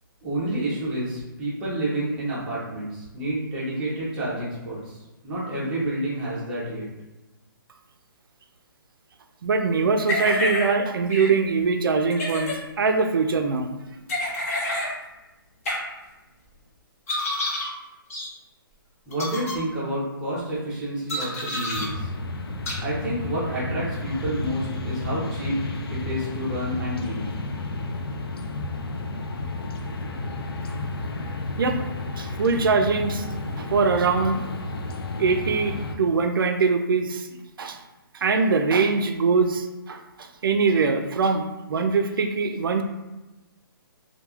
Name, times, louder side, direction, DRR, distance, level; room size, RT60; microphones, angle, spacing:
voice 1, 0.2-5.0 5.2-6.9 19.1-22.1 22.8-25.6 25.9-27.4, right 1 dB, 5° right, -8 dB, 0.5 m, -29 dB
voice 2, 9.4-13.7 31.6-31.8 32.2-33.3 33.6-34.4 35.2-37.3 37.6-37.8 38.1-42.8, right 4 dB, 70° right, 6 dB, 0.4 m, -23 dB
sound 1, 10.1-10.7 11.1-11.3 12.1-12.6 14.1-14.9 15.7-15.8 17.1-17.7 18.1-18.3 19.1-19.6 21.1-21.9 22.7-22.8, left 1 dB, 40° left, 0.6 m, -28 dB
sound 2, 21.8-35.9, left 2 dB, 85° left, 0.4 m, -32 dB
3.0 x 2.3 x 2.3 m, 1.0 s
hypercardioid pair, 170°, 12 cm